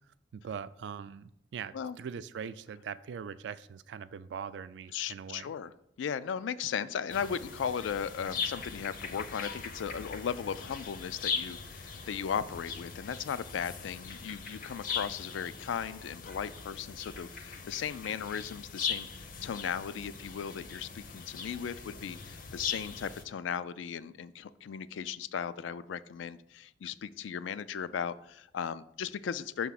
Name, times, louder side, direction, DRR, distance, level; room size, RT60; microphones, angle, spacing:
voice 1, 0.3-5.5, right 7 dB, 75° right, 15 dB, 0.3 m, -41 dB
voice 2, 4.9-5.7 6.0-29.7, left 7 dB, 90° left, 15 dB, 0.3 m, -37 dB
sound 1, 7.1-23.2, left 6 dB, 45° left, 0.6 m, -40 dB
5.9 x 3.6 x 5.7 m, 0.76 s
head